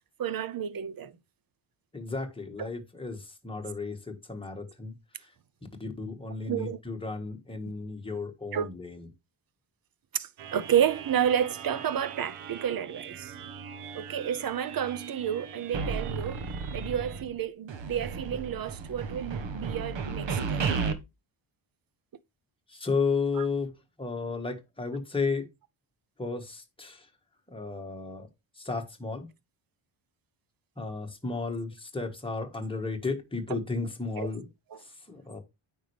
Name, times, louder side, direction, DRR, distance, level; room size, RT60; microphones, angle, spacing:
voice 1, 0.2-1.1 2.6-2.7 6.5-6.8 8.5-8.7 10.1-13.3 13.9-16.5 16.7-20.6 23.4-23.5 33.5-33.6 34.2-34.3, right 9 dB, 45° right, 0.7 m, -30 dB
voice 2, 1.9-5.3 5.8-9.0 22.7-25.5 26.2-27.1 27.5-28.3 28.6-29.3 30.8-34.5 34.8-35.4, left 4 dB, 10° left, 1.6 m, -33 dB
sound 1, 10.4-17.2, right 7 dB, 90° right, 1.0 m, -44 dB
sound 2, 15.7-17.4 17.7-20.9, right 5 dB, 60° right, 1.3 m, -33 dB
9.0 x 5.5 x 3.3 m
wide cardioid pair, 140°, 49 cm